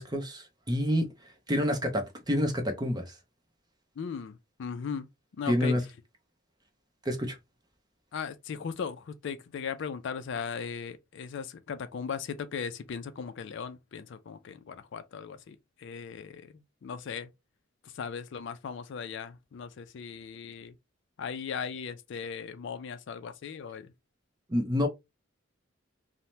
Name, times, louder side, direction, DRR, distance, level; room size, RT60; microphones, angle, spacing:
voice 1, 0.0-3.2 5.5-5.8 7.0-7.4 24.5-24.9, equal, 20° right, 0.6 m, -28 dB
voice 2, 4.0-5.1 5.4-5.7 8.1-16.5 16.8-17.3 17.8-20.7 21.2-23.9, left 6 dB, 60° left, 0.3 m, -38 dB
2.7 x 2.1 x 3.1 m
head